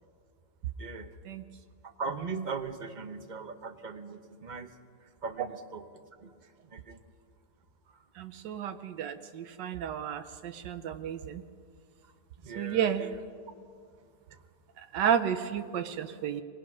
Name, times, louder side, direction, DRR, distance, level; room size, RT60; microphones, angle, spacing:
voice 1, 1.8-4.7 5.2-5.9 6.2-6.3 6.7-7.0 12.4-13.2, right 4 dB, 35° right, 8 dB, 0.7 m, -39 dB
voice 2, 8.2-11.4 12.6-13.1 14.9-16.4, right 8 dB, 85° right, 8 dB, 1.4 m, -31 dB
26.0 x 19.0 x 6.1 m, 2.2 s
omnidirectional pair, 1.9 m